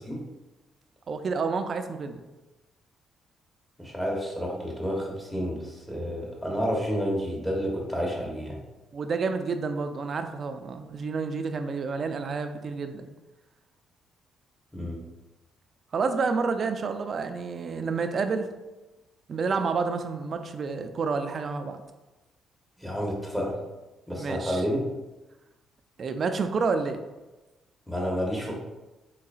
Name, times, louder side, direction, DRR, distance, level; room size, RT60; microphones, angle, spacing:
voice 1, 1.1-2.2 8.9-13.1 15.9-18.5 19.3-21.8 24.1-24.6 26.0-27.0, right 4 dB, 50° right, 8 dB, 0.3 m, -29 dB
voice 2, 3.8-8.6 14.7-15.0 22.8-23.6 24.1-24.8 27.9-28.6, equal, 5° left, -2 dB, 0.9 m, -30 dB
3.7 x 3.2 x 2.4 m, 1.1 s
cardioid pair, 90°, 0 cm